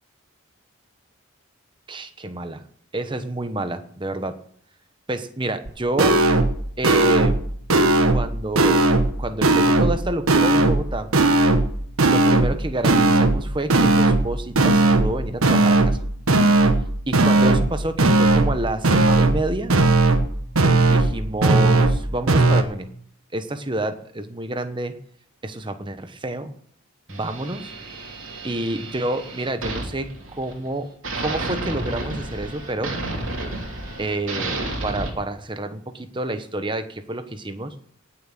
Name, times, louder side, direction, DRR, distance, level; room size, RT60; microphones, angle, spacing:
voice 1, 1.9-2.6 2.9-4.4 5.1-6.2 6.8-7.5 8.1-8.9 9.2-11.1 12.1-16.0 17.1-19.7 20.9-22.9 23.3-24.9 25.4-26.5 27.1-27.7 28.4-30.9 31.2-32.9 34.0-37.7, right 1 dB, 20° right, 10 dB, 1.1 m, -28 dB
sound 1, 5.7-5.8 6.0-6.6 6.8-7.4 7.7-8.3 8.6-9.1 9.4-10.0 10.3-10.8 11.1-11.7 12.0-12.6 12.8-13.4 13.7-14.3 14.6-15.1 15.4-16.0 16.3-16.8 17.1-17.7 18.0-18.6 18.8-19.4 19.7-20.3 20.6-21.1 21.4-22.0 22.3-22.6, right 2 dB, 85° right, 1.4 m, -17 dB
sound 2, 27.1-30.7 31.0-35.1, right 2 dB, 70° right, 3.0 m, -31 dB
18.0 x 7.2 x 7.6 m, 0.63 s
head